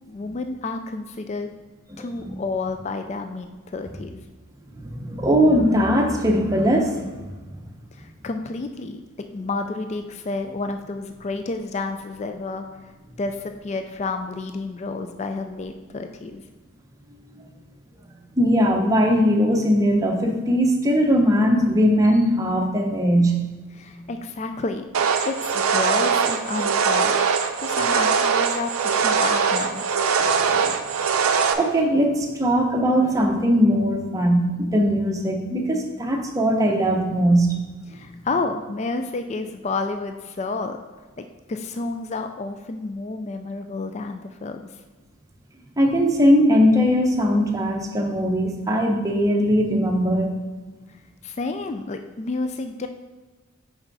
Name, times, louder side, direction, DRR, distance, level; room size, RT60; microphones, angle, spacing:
voice 1, 0.1-1.5 2.0-4.3 7.9-12.9 13.2-16.4 23.7-24.8 25.2-27.2 27.6-29.8 37.9-40.8 41.2-44.7 51.2-52.9, left 3 dB, 30° left, 7 dB, 0.3 m, -30 dB
voice 2, 1.9-2.4 4.7-7.1 7.5-7.6 17.4-17.5 18.4-23.4 30.2-30.8 31.5-37.5 45.8-50.3, equal, 15° right, 1 dB, 0.7 m, -20 dB
sound 1, 24.9-31.5, right 6 dB, 80° right, 0.5 m, -21 dB
5.7 x 5.5 x 4.0 m, 1.3 s
head